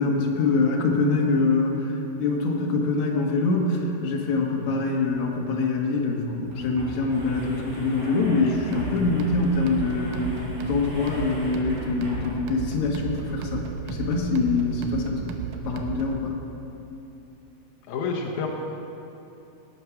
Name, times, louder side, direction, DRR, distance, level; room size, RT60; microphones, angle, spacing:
voice 1, 0.0-1.9 2.2-15.3 15.6-16.4, left 3 dB, 60° left, 0 dB, 2.1 m, -24 dB
sound 1, 6.3-12.7, equal, 60° right, 4.6 m, -40 dB
sound 2, 8.7-16.2, right 7 dB, 85° right, 1.8 m, -34 dB
voice 2, 17.9-18.5, left 5 dB, 85° left, 0 dB, 1.6 m, -28 dB
18.5 x 8.5 x 5.9 m, 2.9 s
omnidirectional pair, 5.1 m